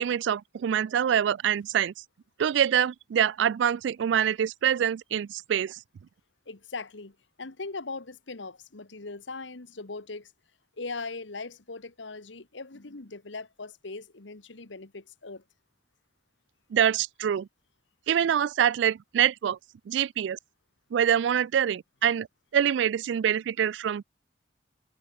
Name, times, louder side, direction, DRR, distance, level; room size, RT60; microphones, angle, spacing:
voice 1, 0.0-1.9 2.4-5.8 16.7-17.5 18.1-19.6 19.9-20.4 20.9-22.3 22.5-24.0, right 9 dB, 75° right, 0.3 m, -25 dB
voice 2, 6.4-10.3 10.8-15.4, left 3 dB, 80° left, 1.5 m, -40 dB
head